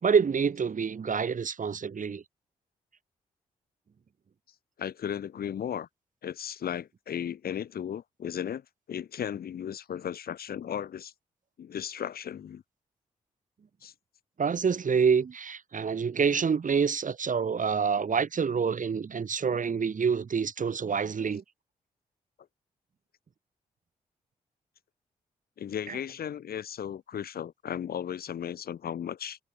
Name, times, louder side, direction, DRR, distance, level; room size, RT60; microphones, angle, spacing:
voice 1, 0.0-2.2 14.4-21.4 25.9-26.0, right 6 dB, 55° right, 3.3 m, -27 dB
voice 2, 4.8-5.9 6.2-11.1 11.6-12.6 13.8-13.9 25.6-29.4, left 9 dB, 70° left, 7.9 m, -35 dB
hypercardioid pair, 40°, 16 cm